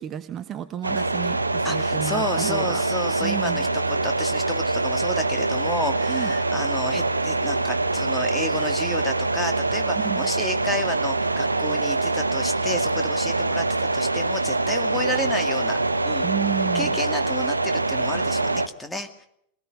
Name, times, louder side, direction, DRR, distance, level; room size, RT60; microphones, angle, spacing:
voice 1, 0.0-2.8 3.2-3.7 6.1-6.3 10.0-10.3 16.2-16.9, right 10 dB, 30° right, 10 dB, 1.1 m, -31 dB
sound 1, 0.8-18.7, right 2 dB, 80° right, 0.8 m, -24 dB
voice 2, 1.6-15.8 16.0-16.3 16.7-19.3, left 1 dB, 5° left, 6 dB, 2.3 m, -31 dB
22.5 x 19.0 x 6.5 m, 0.73 s
figure-of-eight pair, 90°, 0 cm